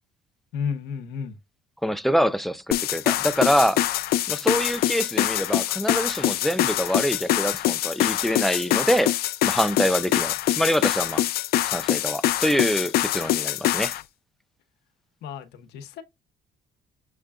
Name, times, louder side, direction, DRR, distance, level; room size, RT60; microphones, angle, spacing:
voice 1, 0.5-1.4 15.2-16.0, left 6 dB, 85° left, 1.0 m, -32 dB
voice 2, 1.8-3.8 4.3-9.1 9.4-11.2 11.6-13.9, equal, ahead, 0.4 m, -25 dB
sound 1, 2.7-14.0, left 14 dB, 65° left, 0.4 m, -24 dB
6.6 x 2.2 x 3.6 m
cardioid pair, 110°, 17 cm